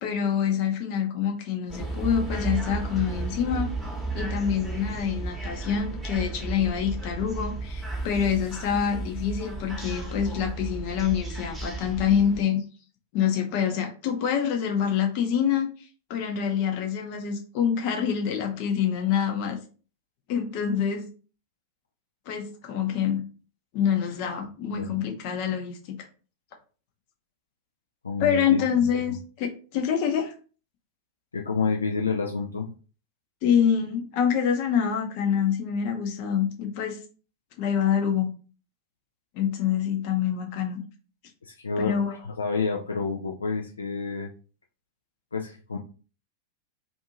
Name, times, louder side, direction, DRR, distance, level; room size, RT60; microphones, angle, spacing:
voice 1, 0.0-3.7 4.1-12.6 13.1-15.7 16.1-19.6 20.3-21.0 22.3-23.2 23.7-25.8 28.2-30.3 33.4-37.0 37.6-38.3 39.3-40.8 41.9-42.2, left 8 dB, 45° left, 3 dB, 0.7 m, -26 dB
sound 1, 1.7-12.4, right 3 dB, 5° right, 1.0 m, -33 dB
voice 2, 28.0-29.2 31.3-32.7 41.4-42.0 42.3-44.3 45.3-45.8, left 4 dB, 75° left, 1 dB, 0.3 m, -29 dB
2.6 x 2.6 x 2.8 m, 0.37 s
figure-of-eight pair, 90°, 0 cm